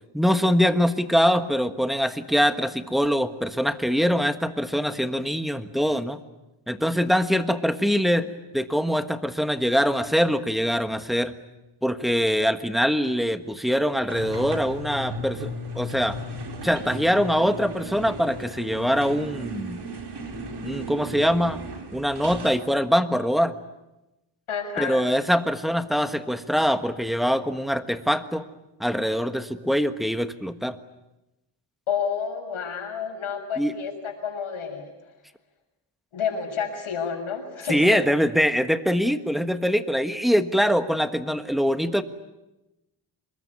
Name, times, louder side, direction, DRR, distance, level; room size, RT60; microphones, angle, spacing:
voice 1, 0.1-6.2 6.7-8.3 8.5-11.3 11.8-15.5 15.7-16.2 16.6-19.8 20.6-21.6 21.9-23.6 24.8-28.5 28.8-30.8 33.6-33.7 37.7-42.0, equal, ahead, 9 dB, 1.4 m, -23 dB
sound 1, 14.1-22.7, right 1 dB, 55° right, 4.0 m, -36 dB
voice 2, 24.5-25.0 31.9-34.9 36.1-38.1, left 6 dB, 80° left, 3 dB, 7.0 m, -30 dB
26.5 x 22.0 x 9.6 m, 0.98 s
wide cardioid pair, 125°, 49 cm